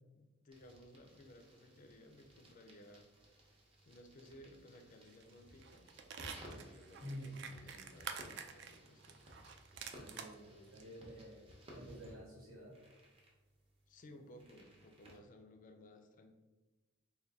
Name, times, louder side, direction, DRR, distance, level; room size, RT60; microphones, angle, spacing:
voice 1, 0.1-3.1 3.9-5.9 6.4-9.2 13.9-16.3, left 1 dB, 35° left, 4 dB, 0.4 m, -59 dB
sound 1, 0.5-15.2, equal, 25° right, 0.7 m, -59 dB
sound 2, 5.1-5.3 5.6-10.3 10.8-10.9, right 7 dB, 55° right, 0.3 m, -48 dB
voice 2, 7.0-7.4 9.9-12.8, equal, 85° right, -6 dB, 1.4 m, -50 dB
3.9 x 2.2 x 3.5 m, 1.2 s
head